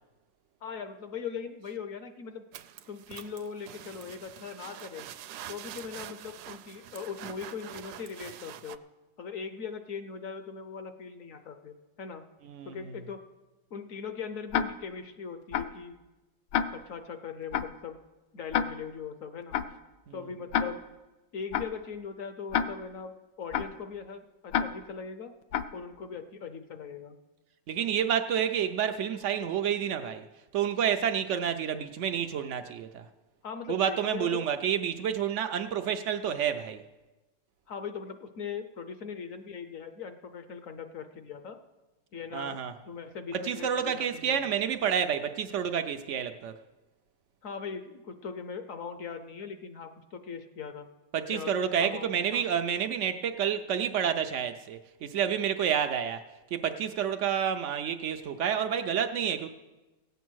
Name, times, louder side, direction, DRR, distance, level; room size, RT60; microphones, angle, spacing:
voice 1, 0.6-2.4 2.9-5.1 5.5-8.8 9.2-12.3 12.6-13.2 13.7-16.0 16.7-18.0 18.3-19.6 20.1-20.8 21.3-23.1 23.4-25.3 25.7-27.2 33.4-34.4 37.7-41.6 42.1-42.6 42.8-44.4 47.4-50.9 51.3-51.5 51.8-52.5, left 6 dB, 60° left, 0.9 m, -40 dB
sound 1, 2.5-8.8, right 11 dB, 70° right, 1.0 m, -45 dB
Tick-tock, 14.5-14.6 15.5-15.7 16.5-16.6 17.5-17.7 18.5-18.6 19.5-19.7 20.5-20.6 21.5-21.7 22.5-22.6 23.5-23.7 24.5-24.6 25.5-25.7, left 8 dB, 75° left, 1.3 m, -26 dB
voice 2, 27.7-30.2 30.5-33.1 33.7-36.8 42.3-42.7 43.3-46.5 51.1-56.2 56.5-59.5, right 8 dB, 90° right, 0.6 m, -29 dB
16.5 x 8.2 x 6.2 m
omnidirectional pair, 2.0 m